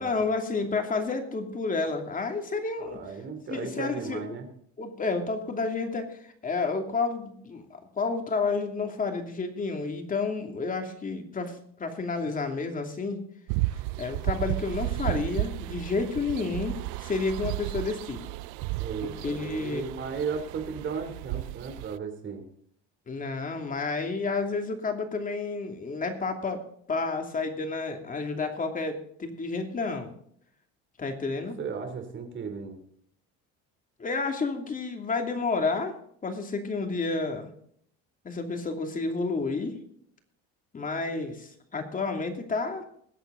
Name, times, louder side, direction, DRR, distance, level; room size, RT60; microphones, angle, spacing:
voice 1, 0.0-3.0 3.5-4.4 4.8-7.6 7.9-13.2 14.0-18.2 19.0-19.9 23.1-26.6 26.9-30.1 31.0-31.6 34.0-35.9 36.2-37.5 38.2-39.8 40.7-42.8, left 4 dB, 25° left, 4 dB, 2.7 m, -30 dB
voice 2, 2.8-4.5 18.8-22.4 31.6-32.8, right 6 dB, 40° right, 6 dB, 3.2 m, -35 dB
sound 1, 13.5-22.0, right 19 dB, 80° right, 0.5 m, -33 dB
21.0 x 8.3 x 3.9 m, 0.65 s
cardioid pair, 115°, 30 cm